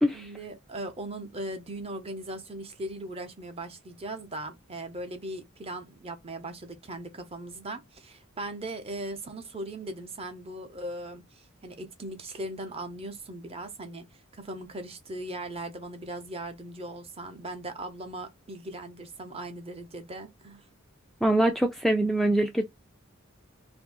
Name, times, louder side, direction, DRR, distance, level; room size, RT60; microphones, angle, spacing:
voice 1, 0.1-14.1 14.3-20.7, right 1 dB, 30° right, 0.7 m, -39 dB
voice 2, 21.2-22.6, right 1 dB, ahead, 0.3 m, -23 dB
2.6 x 2.6 x 3.8 m
head